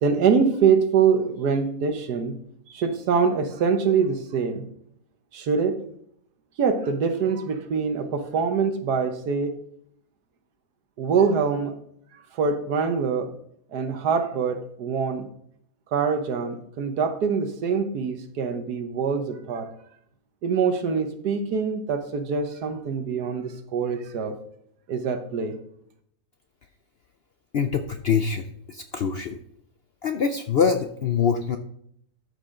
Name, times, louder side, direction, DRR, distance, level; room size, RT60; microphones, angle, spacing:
voice 1, 0.0-2.4 2.7-4.7 5.3-5.8 6.6-9.6 11.0-11.7 12.3-13.3 13.7-15.3 15.9-19.7 20.4-24.3 24.9-25.6, right 6 dB, 85° right, 7 dB, 1.6 m, -24 dB
voice 2, 27.5-29.4 30.0-31.6, left 6 dB, 65° left, 7 dB, 0.6 m, -24 dB
13.0 x 5.4 x 3.7 m, 0.68 s
omnidirectional pair, 1.7 m